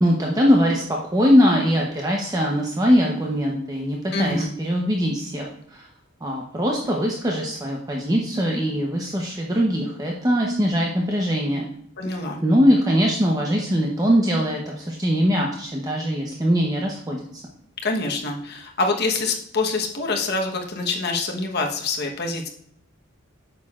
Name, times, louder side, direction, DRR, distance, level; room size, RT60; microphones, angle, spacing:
voice 1, 0.0-5.9 6.2-11.7 12.4-17.3, equal, 20° right, -1 dB, 0.8 m, -21 dB
voice 2, 4.1-4.5 12.0-12.4 17.8-22.5, left 3 dB, 55° left, 2 dB, 1.1 m, -25 dB
8.9 x 6.7 x 2.4 m, 0.67 s
head